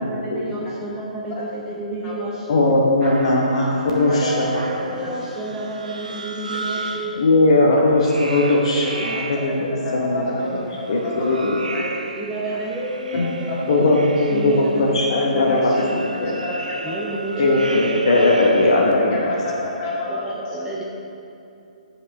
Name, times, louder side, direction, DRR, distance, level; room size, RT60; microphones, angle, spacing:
voice 1, 0.0-2.6 3.8-7.2 8.9-9.9 12.1-16.0 16.8-18.4 20.1-20.8, right 1 dB, 10° right, -4 dB, 0.6 m, -30 dB
voice 2, 2.5-4.6 7.1-10.4 10.9-11.5 13.1-13.3 13.7-14.0 14.3-16.3 17.4-19.3, left 2 dB, 45° left, -2 dB, 0.9 m, -19 dB
sound 1, 3.0-7.3 8.0-9.7 10.7-18.9, right 2 dB, 70° right, 0.6 m, -34 dB
voice 3, 4.1-4.5 5.0-5.1 9.5-9.6 9.8-11.5 11.7-11.9 12.5-12.6 13.5-13.6 15.3-15.8 16.2-17.2 18.9-19.2 19.4-20.2 20.6-20.7, left 2 dB, 25° left, -6 dB, 1.9 m, -30 dB
8.2 x 5.2 x 5.0 m, 2.7 s
figure-of-eight pair, 130°, 4 cm